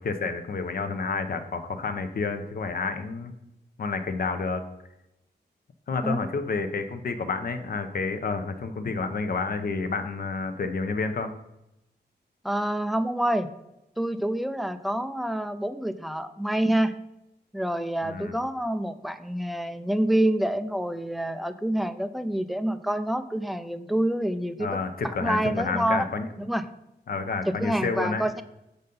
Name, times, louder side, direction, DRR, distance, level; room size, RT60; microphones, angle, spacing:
voice 1, 0.0-3.3 3.8-4.6 5.9-11.3 18.0-18.3 24.6-26.3 27.1-28.3, left 4 dB, 55° left, 8 dB, 0.6 m, -29 dB
voice 2, 12.4-13.5 14.0-17.0 17.5-26.1 26.5-26.6 27.5-28.4, right 1 dB, ahead, 11 dB, 0.3 m, -27 dB
6.6 x 4.0 x 5.2 m, 0.89 s
wide cardioid pair, 120°, 18 cm